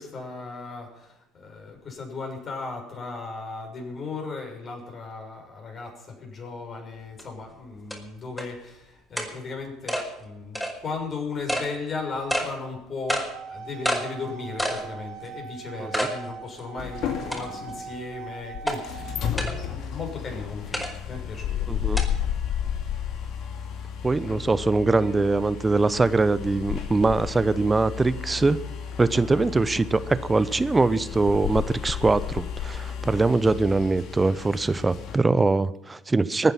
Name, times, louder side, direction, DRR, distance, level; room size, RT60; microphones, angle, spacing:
voice 1, 0.0-21.7 24.2-24.6 25.0-25.6 29.2-29.5, left 4 dB, 40° left, 2 dB, 6.5 m, -36 dB
sound 1, 7.2-7.3 7.9-8.0 8.4-8.5 9.2-9.3 9.9-10.0 10.5-10.7 11.5-11.7 12.3-12.5 13.1-13.3 13.8-14.0 14.6-14.8 15.2-15.3 15.9-16.1 16.6-16.7 17.3-17.7 18.7-18.8 19.4-19.5 20.7-20.9 22.0-22.1, equal, 5° left, 5.0 m, -27 dB
sound 2, 13.1-19.3, right 6 dB, 60° right, 2.2 m, -41 dB
sound 3, 16.8-35.2, left 9 dB, 55° left, 2.4 m, -33 dB
voice 2, 21.7-22.0 24.0-28.6 29.0-36.5, right 3 dB, 20° right, 16 dB, 0.8 m, -22 dB
23.0 x 9.4 x 5.8 m, 0.91 s
hypercardioid pair, 65°, 0 cm